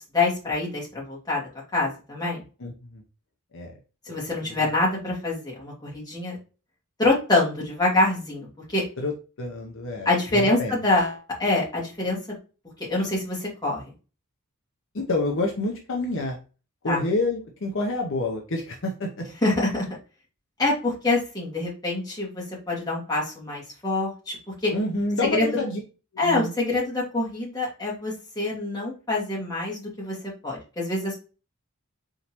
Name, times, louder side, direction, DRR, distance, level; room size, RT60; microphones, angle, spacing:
voice 1, 0.1-1.4 1.7-2.4 4.1-6.4 7.0-8.5 8.7-8.8 10.1-12.2 12.9-13.8 16.9-17.0 19.4-19.8 20.6-24.4 24.6-24.7 25.3-25.5 26.2-30.2 30.4-31.1, left 2 dB, 20° left, -5 dB, 2.0 m, -25 dB
voice 2, 2.6-3.0 3.5-3.7 4.1-4.7 9.0-10.8 14.9-16.4 16.8-19.3 24.7-25.8 26.1-26.5, left 2 dB, 60° left, 1 dB, 0.8 m, -28 dB
4.1 x 3.7 x 2.9 m, 0.34 s
head